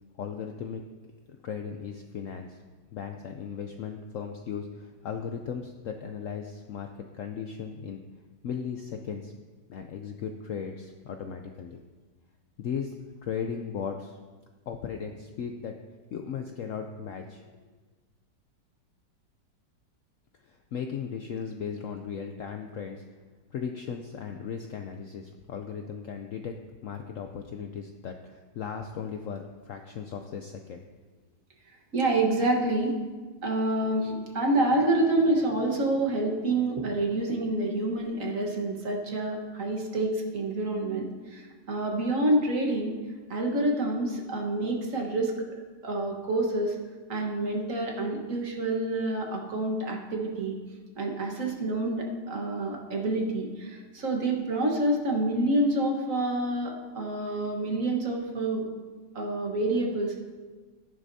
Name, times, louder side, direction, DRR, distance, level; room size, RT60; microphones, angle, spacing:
voice 1, 0.2-0.8 1.4-2.6 2.9-8.0 8.4-9.3 9.7-11.8 12.6-14.2 14.7-15.8 16.1-17.4 20.4-23.0 23.5-26.6 26.8-30.8, left 7 dB, 70° left, 5 dB, 0.8 m, -37 dB
voice 2, 31.9-33.0 33.4-43.0 43.3-45.3 45.8-46.8 47.1-50.6 51.0-58.6 59.1-60.2, right 2 dB, 50° right, 1 dB, 1.6 m, -27 dB
13.0 x 10.5 x 2.7 m, 1.4 s
omnidirectional pair, 1.9 m